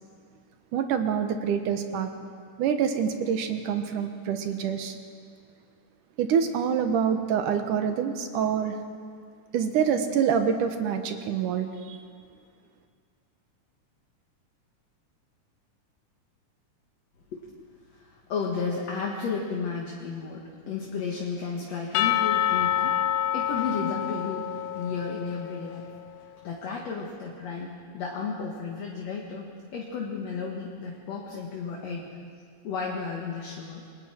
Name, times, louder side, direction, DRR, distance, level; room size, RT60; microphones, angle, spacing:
voice 1, 0.7-2.1 2.6-5.0 6.2-8.8 9.5-12.0, right 7 dB, 80° right, 6 dB, 2.8 m, -26 dB
voice 2, 17.9-23.0 23.3-25.9 26.4-32.2 32.6-33.8, left 5 dB, 55° left, -1 dB, 2.7 m, -33 dB
Percussion / Church bell, 21.9-25.8, left 11 dB, 75° left, 2.1 m, -27 dB
28.0 x 22.0 x 4.6 m, 2.1 s
omnidirectional pair, 3.7 m